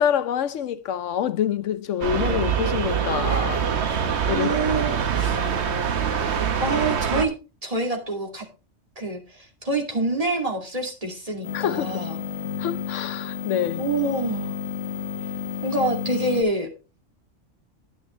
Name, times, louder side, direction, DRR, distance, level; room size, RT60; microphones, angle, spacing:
voice 1, 0.0-3.7 4.3-4.6 11.5-12.0 12.6-13.8, left 9 dB, 85° left, 1.1 m, -26 dB
sound 1, 2.0-7.3, right 7 dB, 65° right, 1.2 m, -24 dB
voice 2, 4.3-5.4 6.6-7.3 7.6-8.4 9.0-12.2 13.8-14.6 15.6-16.7, right 2 dB, 30° right, 2.5 m, -26 dB
sound 2, 11.4-16.4, left 7 dB, 60° left, 1.6 m, -31 dB
10.5 x 9.7 x 3.1 m
omnidirectional pair, 1.2 m